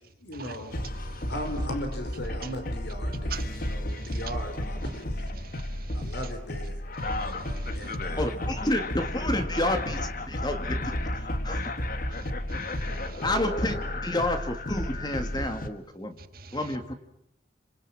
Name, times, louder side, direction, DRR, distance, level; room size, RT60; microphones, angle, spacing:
voice 1, 0.2-0.9 1.3-5.3 5.9-6.8 7.2-8.4 12.0-12.1, equal, 65° left, 5.0 m, -38 dB
sound 1, 0.7-15.7, left 1 dB, 45° left, 1.6 m, -32 dB
voice 2, 3.3-4.1 5.4-6.1 7.0-7.9 12.1-13.2 16.3-16.6, right 5 dB, 50° right, 1.8 m, -45 dB
voice 3, 8.2-11.7 12.1-12.2 13.2-16.2 16.5-16.9, left 1 dB, 20° left, 1.8 m, -30 dB
27.5 x 26.0 x 7.6 m
head